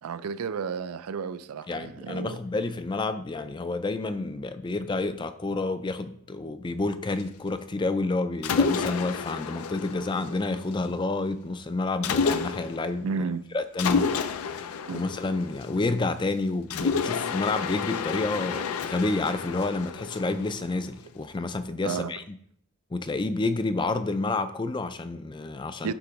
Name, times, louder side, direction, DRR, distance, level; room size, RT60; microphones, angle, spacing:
voice 1, 0.0-2.4 13.0-13.4 14.9-15.0 21.8-22.1 25.8-25.9, right 5 dB, 90° right, 0.4 m, -32 dB
voice 2, 1.7-13.1 13.5-14.2 14.4-22.4 22.9-25.9, left 3 dB, 20° left, 0.3 m, -29 dB
Mechanisms, 8.4-10.9 12.0-12.9 13.8-16.1 16.7-20.9, left 5 dB, 85° left, 0.5 m, -30 dB
8.3 x 3.0 x 5.7 m
head